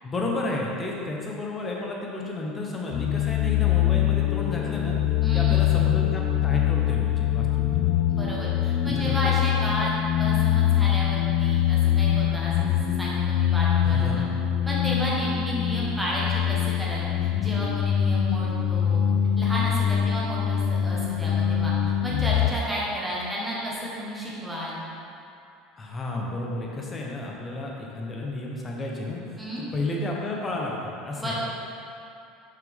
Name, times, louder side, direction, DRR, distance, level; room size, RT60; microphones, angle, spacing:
voice 1, 0.0-5.0 5.3-8.0 8.8-9.4 13.8-14.4 20.0-20.2 25.8-31.3, left 2 dB, 20° left, -2 dB, 0.9 m, -32 dB
sound 1, 2.9-22.5, left 10 dB, 45° left, 0.3 m, -24 dB
voice 2, 5.2-5.7 8.1-9.9 10.2-14.1 14.6-19.0 19.4-21.7 22.0-24.8 29.4-29.6 31.2-31.3, equal, 5° right, -7 dB, 1.2 m, -32 dB
6.2 x 5.8 x 3.5 m, 2.6 s
cardioid pair, 155°, 0 cm